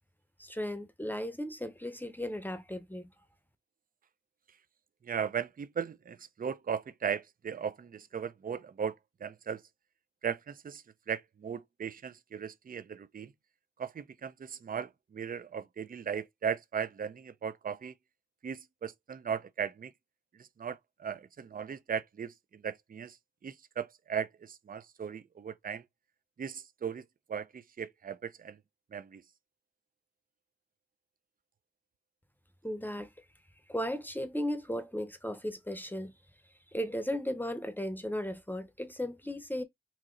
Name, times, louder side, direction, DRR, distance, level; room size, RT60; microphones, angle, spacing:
voice 1, 0.4-3.1 32.6-33.1 33.7-36.1 36.7-39.6, equal, 10° left, 0.7 m, -36 dB
voice 2, 5.0-9.0 9.2-9.6 10.2-13.3 13.8-17.9 18.4-19.9 20.4-23.2 23.4-25.8 26.4-27.0 27.3-28.6 28.9-29.2, right 7 dB, 45° right, 0.4 m, -37 dB
3.0 x 2.8 x 3.8 m
cardioid pair, 45°, 20 cm